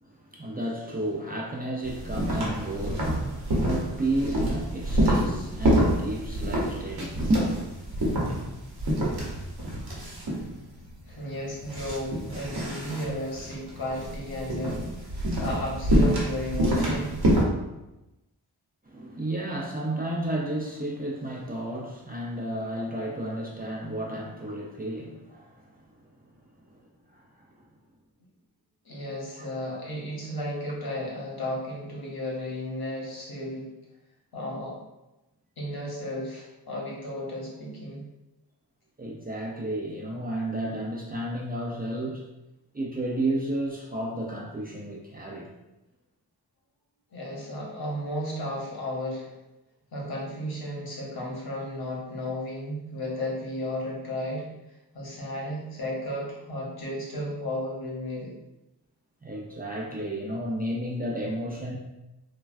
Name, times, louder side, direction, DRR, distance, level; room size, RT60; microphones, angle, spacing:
voice 1, 0.0-7.4 18.9-25.6 26.7-26.8 27.1-27.2 29.3-29.5 39.0-42.2 42.7-45.5 59.2-61.7, right 1 dB, 25° right, -3 dB, 0.3 m, -32 dB
sound 1, 1.8-17.4, right 1 dB, 65° right, 0.8 m, -27 dB
voice 2, 11.1-14.8 15.1-17.2 28.8-33.7 34.3-34.8 35.6-38.1 47.1-49.3 49.9-54.5 54.9-58.3, left 1 dB, 65° left, -4 dB, 0.9 m, -34 dB
3.2 x 2.2 x 2.4 m, 0.97 s
wide cardioid pair, 115°, 40 cm